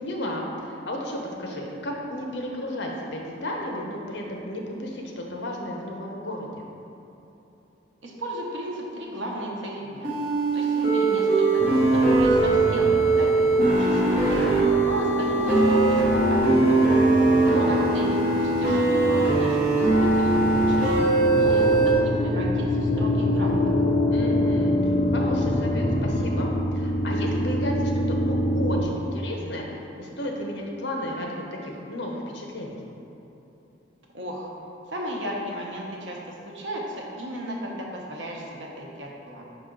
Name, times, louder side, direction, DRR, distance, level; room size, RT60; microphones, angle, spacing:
voice 1, 0.0-6.6 17.5-17.9 24.1-32.8, left 1 dB, 65° left, 0 dB, 0.8 m, -33 dB
voice 2, 8.0-10.1 10.5-14.4 14.8-17.0 17.7-20.9 21.3-23.6 34.1-34.5 34.9-39.4, right 1 dB, 80° right, -2 dB, 1.0 m, -35 dB
sound 1, 10.0-21.9, right 3 dB, 50° right, 1.3 m, -21 dB
sound 2, 11.6-28.8, left 1 dB, 25° left, 0.4 m, -26 dB
5.2 x 4.9 x 3.8 m, 3.0 s
head